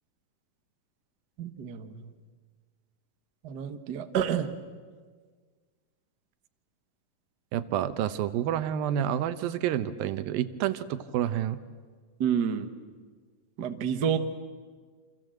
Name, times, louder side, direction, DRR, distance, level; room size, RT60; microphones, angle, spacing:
voice 1, 1.4-2.1 3.4-4.5 12.2-12.7 13.6-14.2, right 8 dB, 60° right, 7 dB, 1.1 m, -29 dB
voice 2, 7.5-11.6, right 10 dB, 85° right, 12 dB, 2.8 m, -29 dB
28.0 x 27.0 x 7.8 m, 1.6 s
omnidirectional pair, 4.1 m